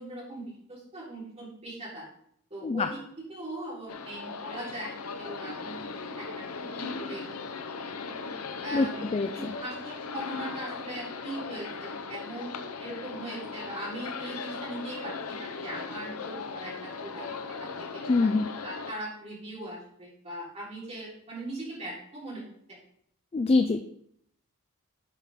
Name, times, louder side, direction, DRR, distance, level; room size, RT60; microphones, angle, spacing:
voice 1, 0.0-2.1 2.5-4.9 5.2-6.4 6.7-7.3 8.6-9.1 9.4-12.5 12.8-17.3 17.6-18.3 18.6-22.8, right 1 dB, 30° right, -6 dB, 3.8 m, -40 dB
sound 1, 3.9-18.9, left 4 dB, 85° left, 0.8 m, -38 dB
voice 2, 9.1-9.5 18.1-18.5 23.3-23.8, left 3 dB, 25° left, 8 dB, 0.4 m, -24 dB
10.5 x 5.8 x 3.6 m, 0.71 s
head